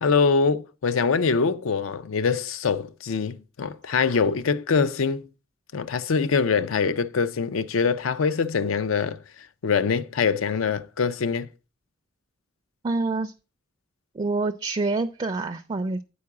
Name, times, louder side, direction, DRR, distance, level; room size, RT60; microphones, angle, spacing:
voice 1, 0.0-5.2 5.7-9.2 9.6-11.5, left 5 dB, 90° left, 0.5 m, -24 dB
voice 2, 12.8-13.3 14.1-16.0, right 3 dB, 25° right, 0.4 m, -26 dB
8.6 x 4.6 x 4.7 m
head